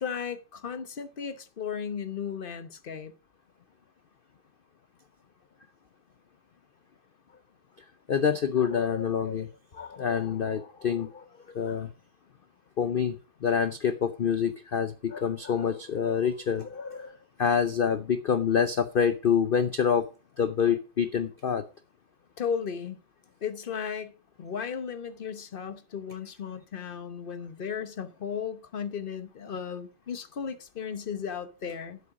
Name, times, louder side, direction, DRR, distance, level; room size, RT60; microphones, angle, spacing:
voice 1, 0.0-3.1 22.4-23.0 23.4-24.1 24.4-32.0, left 7 dB, 40° left, 0.8 m, -35 dB
voice 2, 8.1-11.9 12.8-20.1 20.4-21.6, left 7 dB, 80° left, 0.5 m, -27 dB
10.5 x 7.9 x 4.8 m
omnidirectional pair, 1.8 m